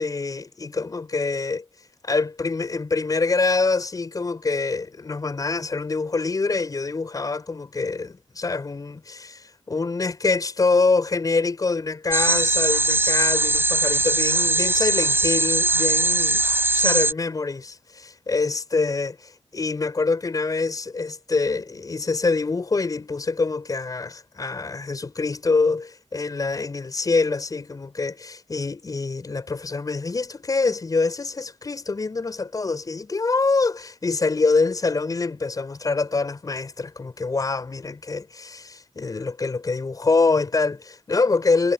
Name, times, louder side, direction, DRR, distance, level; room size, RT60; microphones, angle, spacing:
voice 1, 0.0-1.6 2.0-41.7, left 3 dB, 35° left, 7.1 m, -25 dB
sound 1, 12.1-17.1, right 2 dB, 20° right, 7.8 m, -20 dB
wide cardioid pair, 125°, 11 cm